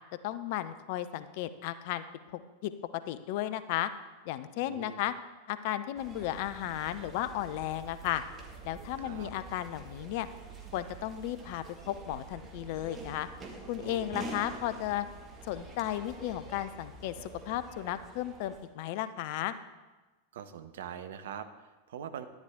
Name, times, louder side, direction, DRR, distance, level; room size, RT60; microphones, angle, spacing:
voice 1, 0.2-2.0 2.3-2.7 3.1-3.9 4.3-5.1 5.5-8.2 8.6-10.3 10.7-13.3 13.7-15.1 15.4-19.5, left 13 dB, 50° left, 13 dB, 0.6 m, -34 dB
voice 2, 4.7-5.0 9.0-9.3 13.8-14.2 20.3-22.3, right 9 dB, 60° right, 10 dB, 0.8 m, -43 dB
sound 1, 6.0-18.7, right 3 dB, 25° right, 1.8 m, -47 dB
11.0 x 10.5 x 3.6 m, 1.2 s
figure-of-eight pair, 90°, 0 cm